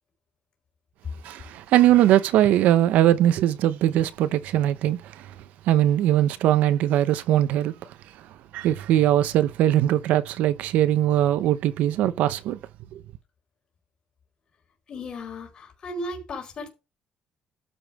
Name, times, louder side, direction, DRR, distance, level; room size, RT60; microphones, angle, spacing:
voice 1, 1.2-5.0 5.7-7.7 8.5-12.6 12.9-13.0, right 12 dB, 90° right, 0.7 m, -20 dB
voice 2, 14.9-16.7, left 1 dB, 35° left, 4.5 m, -35 dB
12.5 x 5.4 x 6.0 m
cardioid pair, 175°, 3 cm